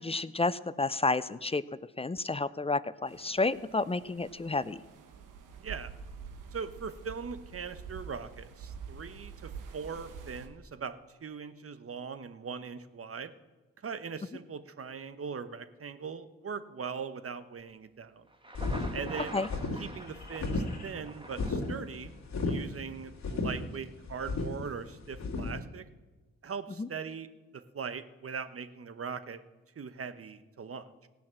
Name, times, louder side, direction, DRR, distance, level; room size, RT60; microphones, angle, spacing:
voice 1, 0.0-1.6 2.0-4.8 19.3-19.5 26.8-26.9, left 3 dB, 20° left, 16 dB, 0.5 m, -30 dB
sound 1, 3.1-10.5, right 6 dB, 80° right, 1.1 m, -47 dB
voice 2, 6.5-13.3 13.8-18.3 18.9-19.4 19.8-22.1 22.4-25.9 26.4-27.3 27.5-29.4 29.7-31.1, right 6 dB, 45° right, 11 dB, 1.1 m, -40 dB
Thunder, 18.3-22.3, right 1 dB, 15° right, 1.7 m, -45 dB
sound 2, 18.5-25.6, left 3 dB, 60° left, 2.1 m, -34 dB
17.0 x 5.8 x 7.6 m, 1.2 s
supercardioid pair, 45°, 31 cm